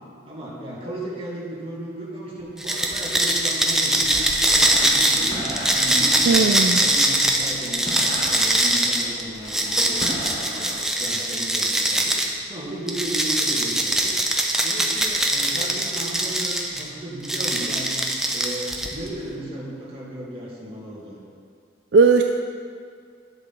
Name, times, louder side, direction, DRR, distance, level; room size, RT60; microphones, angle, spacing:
voice 1, 0.2-5.5 5.8-7.9 8.3-14.2 14.6-18.0 18.3-21.2, right 1 dB, 30° right, -5 dB, 2.3 m, -35 dB
sound 1, 2.6-12.3 12.9-16.8 17.2-19.1, right 1 dB, ahead, 0.7 m, -22 dB
sound 2, 4.0-10.8, equal, 30° left, 1.6 m, -35 dB
voice 2, 6.3-6.8 21.9-22.2, right 4 dB, 60° right, 4 dB, 0.4 m, -16 dB
10.5 x 7.9 x 6.1 m, 2.2 s
head